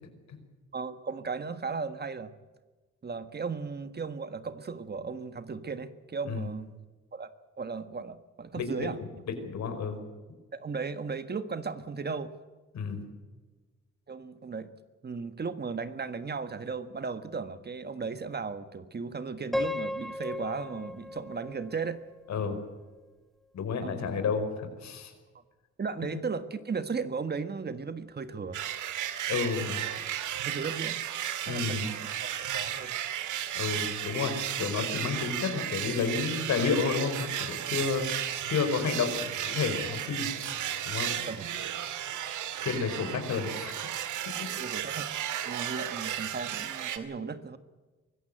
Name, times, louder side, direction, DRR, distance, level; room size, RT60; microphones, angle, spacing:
voice 1, 0.7-2.3 3.0-6.8 7.1-7.3 7.6-9.0 10.5-12.3 14.1-14.7 15.0-22.0 23.8-24.1 25.8-28.6 30.5-31.0 31.4-32.9 41.2-41.5 44.6-45.1 45.4-47.6, right 5 dB, 35° right, 11 dB, 1.5 m, -36 dB
voice 2, 8.5-8.9 9.4-9.9 12.7-13.1 22.3-22.6 23.5-25.1 29.3-29.8 31.4-31.9 33.5-38.1 38.4-40.3 40.8-41.1 42.6-43.7, left 5 dB, 65° left, 7 dB, 5.0 m, -31 dB
Piano, 19.5-22.5, left 2 dB, ahead, 0.8 m, -35 dB
sound 1, 28.5-47.0, right 10 dB, 80° right, 2.2 m, -34 dB
24.5 x 14.5 x 9.0 m, 1.3 s
cardioid pair, 90°, 30 cm